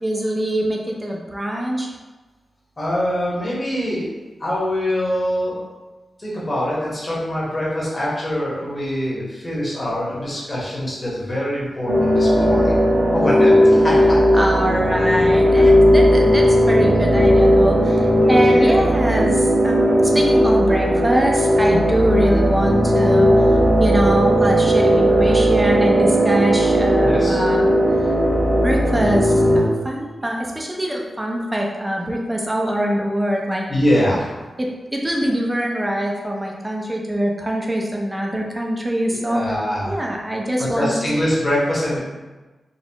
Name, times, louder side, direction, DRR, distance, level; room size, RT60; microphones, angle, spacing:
voice 1, 0.0-1.9 13.2-13.4 14.3-23.3 23.8-27.7 28.6-33.6 34.6-39.4 39.8-41.0, right 1 dB, 15° right, -1 dB, 0.5 m, -23 dB
voice 2, 2.8-4.0 4.4-5.6 6.2-12.8 13.1-14.2 15.4-15.7 18.1-18.8 21.6-21.8 27.0-27.4 33.7-34.3 39.1-40.0 40.6-42.0, equal, 30° left, -7 dB, 1.2 m, -23 dB
sound 1, 11.9-29.6, equal, 55° right, 1.0 m, -16 dB
4.0 x 2.4 x 2.9 m, 1.2 s
wide cardioid pair, 120°, 0 cm